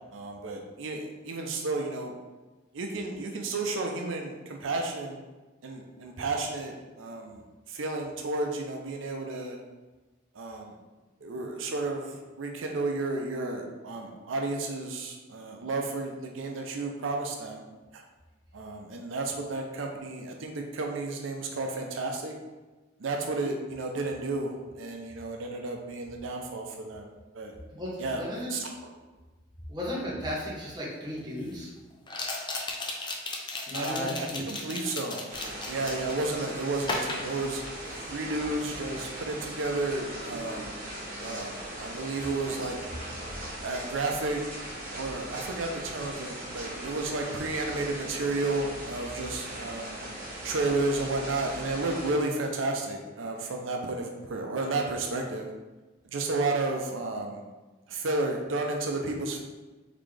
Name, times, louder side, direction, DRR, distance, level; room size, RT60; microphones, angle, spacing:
voice 1, 0.1-2.1 2.7-5.2 5.6-9.6 10.3-10.7 11.2-17.6 17.9-18.0 18.5-22.3 23.0-27.5 28.0-28.2 28.5-28.7 33.7-35.2 35.7-37.6 38.1-40.7 41.2-42.8 43.6-44.4 44.9-50.0 50.4-55.5 56.0-57.4 57.9-59.4, right 2 dB, 85° right, 2 dB, 0.5 m, -32 dB
voice 2, 27.7-28.6 29.7-31.7 33.7-34.4, left 1 dB, 20° right, -6 dB, 1.2 m, -35 dB
sound 1, 30.4-30.5 32.1-36.3 36.8-38.1 38.4-38.8, left 2 dB, 25° left, 0.5 m, -35 dB
sound 2, 35.3-52.1, right 1 dB, 45° right, 1.2 m, -39 dB
4.0 x 3.6 x 3.3 m, 1.2 s
head